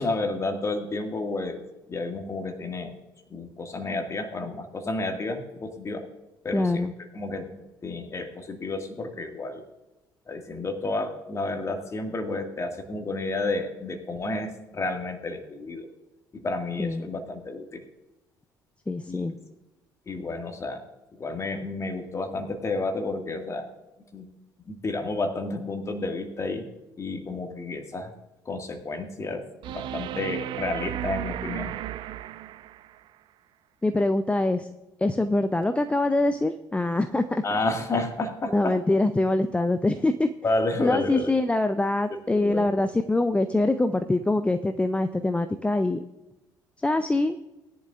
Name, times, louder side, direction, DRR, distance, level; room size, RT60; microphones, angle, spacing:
voice 1, 0.0-1.6 1.9-3.0 3.3-6.1 6.4-9.6 10.3-15.9 16.3-17.8 19.1-19.5 20.1-20.8 21.2-23.7 24.1-24.3 24.7-26.7 27.0-28.1 28.5-31.7 37.4-38.8 40.4-41.3 42.3-42.7, left 2 dB, 30° left, 5 dB, 1.9 m, -31 dB
voice 2, 6.5-6.9 16.8-17.0 18.9-19.3 33.8-34.7 35.0-37.4 38.5-40.3 40.8-46.0 46.8-47.4, left 2 dB, 10° left, 9 dB, 0.6 m, -24 dB
sound 1, 29.6-33.0 35.6-35.7, right 11 dB, 50° right, 0.5 m, -34 dB
19.5 x 11.0 x 2.5 m, 1.0 s
figure-of-eight pair, 55°, 10 cm